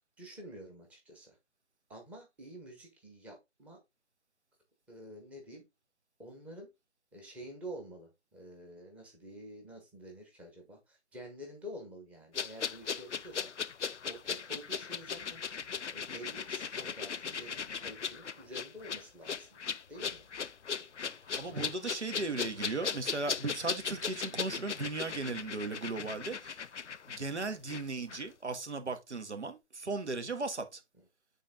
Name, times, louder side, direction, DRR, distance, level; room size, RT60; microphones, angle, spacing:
voice 1, 0.2-1.4 1.9-3.8 4.9-5.6 6.2-6.7 7.1-13.5 14.0-15.4 15.9-19.6 19.9-20.3 20.8-20.9 21.5-21.6, equal, 5° right, 0.9 m, -48 dB
sound 1, 12.3-27.8 28.1-28.2, left 6 dB, 80° left, 0.6 m, -38 dB
voice 2, 21.3-26.6 27.1-30.8, right 3 dB, 75° right, 1.7 m, -37 dB
8.5 x 3.7 x 3.6 m
figure-of-eight pair, 140°, 34 cm